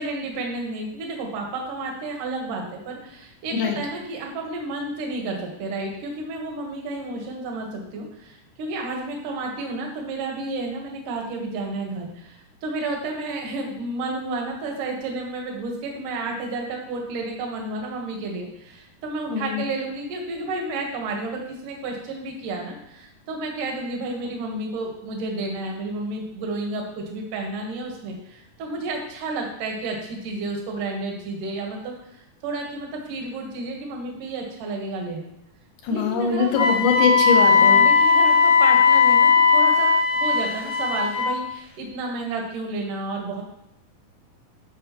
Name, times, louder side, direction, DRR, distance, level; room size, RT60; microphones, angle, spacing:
voice 1, 0.0-35.3 35.9-36.7 37.5-39.9 40.2-43.4, right 2 dB, 75° right, 1 dB, 2.9 m, -31 dB
voice 2, 19.3-19.6 35.8-37.8, left 6 dB, 70° left, 2 dB, 2.6 m, -22 dB
Wind instrument woodwind instrument, 36.5-41.4, left 5 dB, 30° left, 0.8 m, -17 dB
13.0 x 6.3 x 3.0 m, 0.85 s
omnidirectional pair, 3.7 m